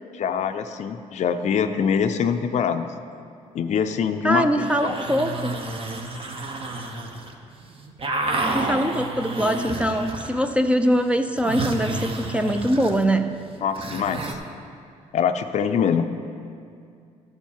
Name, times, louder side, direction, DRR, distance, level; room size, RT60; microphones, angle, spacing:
voice 1, 0.2-2.9 3.5-5.0 13.6-14.4 15.1-16.0, left 7 dB, 55° left, 7 dB, 0.5 m, -24 dB
voice 2, 4.2-5.6 8.5-13.3, equal, 10° right, 7 dB, 0.5 m, -22 dB
sound 1, 4.4-7.3 7.6-10.5 10.8-14.3, right 2 dB, 40° right, 1.1 m, -30 dB
12.5 x 4.5 x 7.3 m, 2.4 s
cardioid pair, 80°, 15 cm